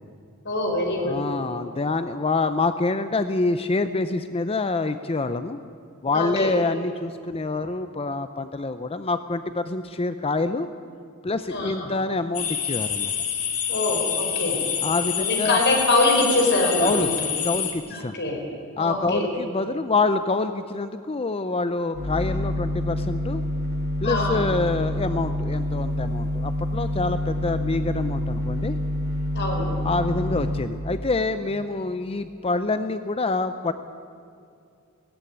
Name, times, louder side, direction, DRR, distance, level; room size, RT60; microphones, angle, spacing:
voice 1, 0.4-1.2 6.1-6.5 11.5-11.9 13.7-14.6 15.3-17.2 17.9-18.4 18.8-19.2 24.0-24.4 29.3-29.7, left 2 dB, 55° left, 1 dB, 4.8 m, -24 dB
voice 2, 1.0-5.6 6.0-10.7 11.2-13.1 14.8-15.6 16.8-17.1 17.4-18.2 18.8-23.4 24.0-28.8 29.8-33.7, left 3 dB, 25° left, 11 dB, 0.6 m, -26 dB
sound 1, 12.3-17.7, left 8 dB, 70° left, 2.7 m, -27 dB
sound 2, 21.9-30.6, left 1 dB, 75° right, 6.6 m, -27 dB
17.0 x 16.5 x 10.0 m, 2.4 s
head